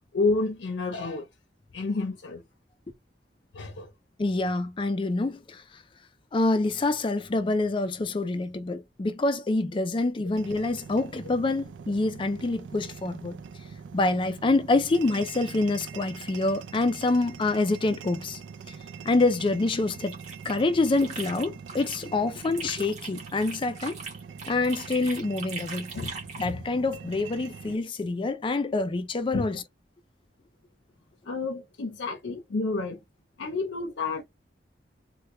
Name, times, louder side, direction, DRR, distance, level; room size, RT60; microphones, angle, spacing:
voice 1, 0.1-1.3 1.7-2.4 3.5-3.9 25.9-26.1 26.4-26.6 29.3-29.5 31.3-33.0 33.4-34.2, left 3 dB, 80° left, 0.6 m, -29 dB
voice 2, 4.2-5.8 6.3-13.4 13.9-18.4 19.0-20.1 20.4-24.0 24.5-25.9 26.4-29.6, left 2 dB, 30° left, 0.4 m, -26 dB
sound 1, 10.3-27.8, right 6 dB, 85° right, 0.4 m, -43 dB
sound 2, 19.9-22.0 22.3-26.5, right 4 dB, 40° right, 1.3 m, -41 dB
3.4 x 2.2 x 2.9 m
head